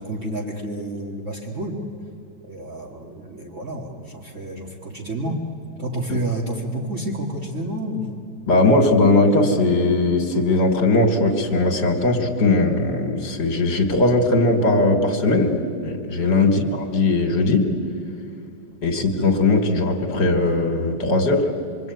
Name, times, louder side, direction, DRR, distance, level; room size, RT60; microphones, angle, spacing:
voice 1, 0.0-1.8 2.4-5.4 5.8-8.2 16.4-16.7 18.9-19.0, right 1 dB, 35° right, -4 dB, 2.4 m, -30 dB
voice 2, 8.5-15.5 15.8-17.7 18.8-21.5, left 2 dB, 60° left, 1 dB, 2.7 m, -19 dB
26.5 x 23.5 x 9.4 m, 2.6 s
omnidirectional pair, 2.2 m